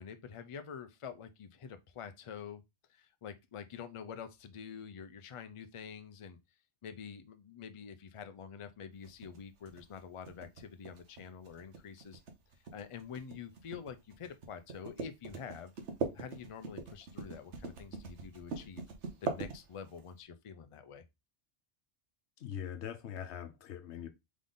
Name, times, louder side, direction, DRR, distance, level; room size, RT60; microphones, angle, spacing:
voice 1, 0.0-2.6 2.9-6.4 6.8-12.2 12.7-15.7 16.1-18.8 19.2-21.0, left 7 dB, 45° left, 0.4 m, -47 dB
sound 1, 9.0-20.1, right 4 dB, 90° right, 1.2 m, -42 dB
voice 2, 22.4-24.1, left 9 dB, 75° left, 1.0 m, -42 dB
3.8 x 3.7 x 3.6 m
omnidirectional pair, 1.2 m